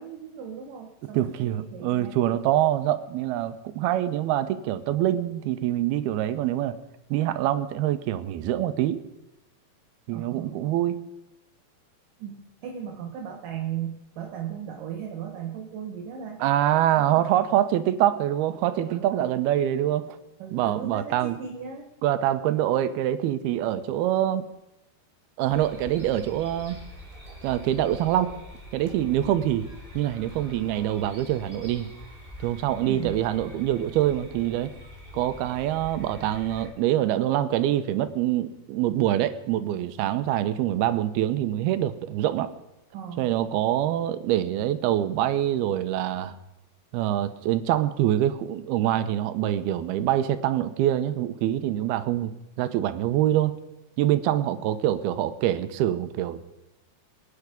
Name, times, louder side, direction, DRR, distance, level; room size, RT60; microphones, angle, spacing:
voice 1, 0.0-2.4 10.1-10.6 12.2-16.4 17.0-17.3 18.9-19.4 20.4-21.9 32.8-33.3 42.9-43.3 54.4-54.7, right 8 dB, 65° right, 2 dB, 2.8 m, -37 dB
voice 2, 1.1-6.8 7.1-9.1 10.1-11.0 16.4-20.2 20.5-21.4 22.0-24.4 25.4-26.8 27.4-28.4 28.7-29.7 29.9-31.9 32.4-34.7 35.1-42.5 43.2-46.4 46.9-53.6 54.0-56.5, right 12 dB, 85° right, 12 dB, 2.8 m, -25 dB
sound 1, 25.5-36.7, left 1 dB, 15° right, 2.7 m, -44 dB
25.5 x 9.7 x 5.2 m, 0.93 s
omnidirectional pair, 4.4 m